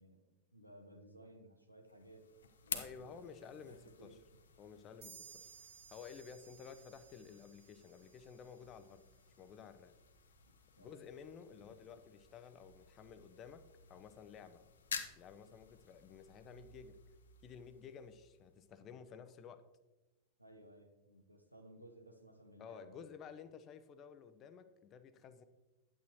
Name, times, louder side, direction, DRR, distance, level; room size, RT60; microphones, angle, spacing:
voice 1, 0.0-2.3 2.6-4.2 10.8-11.1 11.7-11.8 20.4-23.1, right 1 dB, 90° right, 5 dB, 0.9 m, -59 dB
sound 1, 1.8-18.8, left 6 dB, 65° left, 0.7 m, -52 dB
voice 2, 2.7-4.1 4.6-5.5 5.9-9.0 9.4-10.0 10.8-13.6 13.9-14.6 15.1-17.0 17.4-19.6 22.6-25.4, left 7 dB, 30° left, 11 dB, 0.6 m, -53 dB
sound 2, 5.0-8.6, right 7 dB, 40° right, 1.3 m, -59 dB
9.3 x 8.7 x 3.0 m, 1.1 s
figure-of-eight pair, 90°, 0 cm